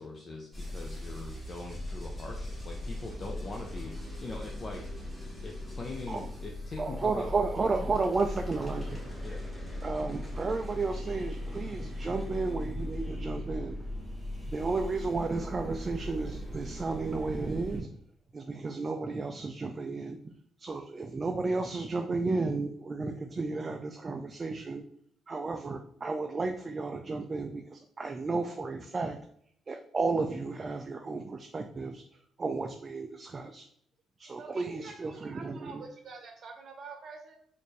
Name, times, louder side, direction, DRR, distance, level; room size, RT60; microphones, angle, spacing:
voice 1, 0.0-4.8 5.4-7.2 9.2-9.4, left 3 dB, 35° left, 1 dB, 0.6 m, -42 dB
sound 1, 0.5-17.8, left 1 dB, 5° left, 1.4 m, -39 dB
voice 2, 6.8-9.0 9.8-13.8 14.4-17.9 18.3-20.2 20.6-24.8 25.3-29.2 29.7-32.0 32.4-33.6 34.2-35.8, right 3 dB, 35° right, 5 dB, 0.3 m, -33 dB
voice 3, 34.4-37.4, right 4 dB, 55° right, 3 dB, 0.8 m, -46 dB
4.2 x 2.6 x 3.1 m, 0.66 s
cardioid pair, 90°, 0 cm